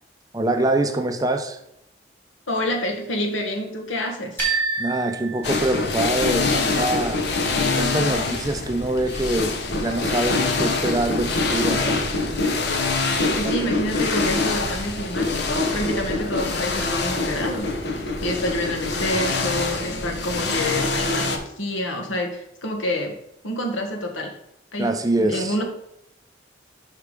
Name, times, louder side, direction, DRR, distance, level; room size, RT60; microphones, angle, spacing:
voice 1, 0.3-1.6 4.8-7.3 7.7-12.0 13.4-13.5 24.8-25.6, right 1 dB, 20° right, 6 dB, 0.5 m, -24 dB
voice 2, 2.5-4.4 13.2-23.2 23.4-24.3 24.7-25.6, left 1 dB, 85° left, 3 dB, 1.4 m, -28 dB
sound 1, 4.4-6.3, right 4 dB, 10° left, 1.8 m, -28 dB
sound 2, 5.4-21.4, left 3 dB, 60° left, 0.9 m, -24 dB
5.7 x 4.7 x 5.0 m, 0.80 s
head